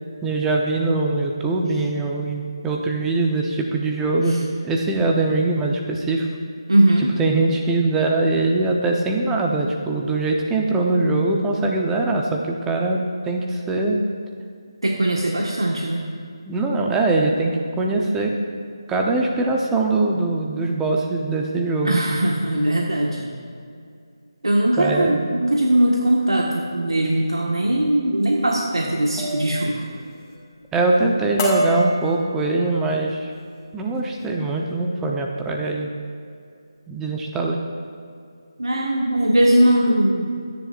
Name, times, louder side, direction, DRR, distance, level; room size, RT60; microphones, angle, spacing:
voice 1, 0.2-4.4 4.6-6.3 7.2-14.0 16.5-18.3 18.9-22.0 24.8-25.3 30.7-33.3 33.7-35.9 36.9-37.6, right 2 dB, 10° right, 0 dB, 0.9 m, -22 dB
voice 2, 6.7-7.1 14.8-16.1 21.8-23.3 24.4-29.8 38.6-40.3, right 1 dB, 85° right, -2 dB, 1.6 m, -20 dB
sound 1, 28.2-28.5 29.2-29.5 29.8-30.3 30.7-31.0 31.4-32.7 33.3-33.5 33.9-34.3, equal, 15° left, 2.4 m, -27 dB
23.5 x 10.5 x 2.6 m, 2.3 s
figure-of-eight pair, 160°, 3 cm